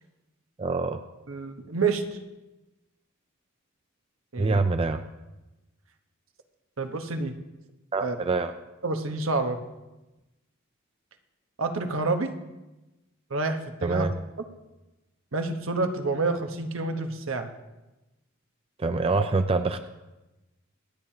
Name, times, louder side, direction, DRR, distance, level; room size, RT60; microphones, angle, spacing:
voice 1, 0.6-1.0 4.4-5.0 7.9-8.5 13.8-14.1 18.8-19.8, right 3 dB, 25° right, 8 dB, 0.4 m, -25 dB
voice 2, 1.3-2.0 4.3-4.6 6.8-7.3 8.0-8.2 8.8-9.6 11.6-12.3 13.3-14.1 15.3-17.5 19.1-19.2, right 3 dB, 70° right, 6 dB, 1.1 m, -28 dB
25.5 x 8.9 x 2.9 m, 1.0 s
head